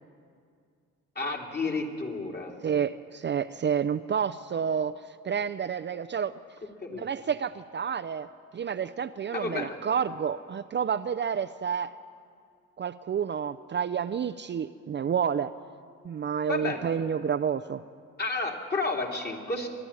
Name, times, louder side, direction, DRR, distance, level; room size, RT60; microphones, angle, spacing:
voice 1, 1.1-2.5 6.8-7.1 9.3-9.7 16.5-16.8 18.2-19.7, left 3 dB, 35° left, 0 dB, 2.9 m, -31 dB
voice 2, 2.6-4.9 5.2-6.3 6.9-8.3 8.5-11.9 12.8-15.5 16.0-17.8, right 7 dB, 35° right, 9 dB, 0.5 m, -29 dB
24.5 x 11.0 x 9.9 m, 2.2 s
cardioid pair, 90°, 30 cm